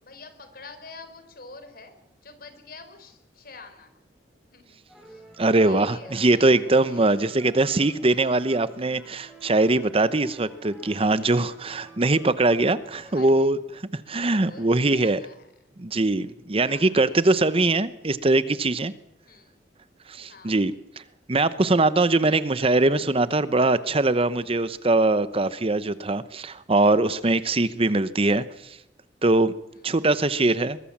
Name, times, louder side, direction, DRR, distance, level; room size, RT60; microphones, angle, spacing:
voice 1, 0.0-1.9 2.2-3.9 4.5-4.8 5.1-5.2 5.6-7.3 13.0-13.5 14.4-15.5 16.6-16.9 19.2-19.5 20.3-20.6 21.7-21.9 22.3-22.7 27.6-27.8, left 3 dB, 55° left, 9 dB, 4.1 m, -46 dB
sound 1, 4.9-13.4, right 1 dB, ahead, 6.9 m, -50 dB
voice 2, 5.4-15.2 15.8-18.9 20.1-20.7 21.3-28.8 29.2-29.5 29.8-30.8, right 2 dB, 35° right, 14 dB, 0.8 m, -22 dB
22.5 x 22.0 x 7.3 m, 0.80 s
head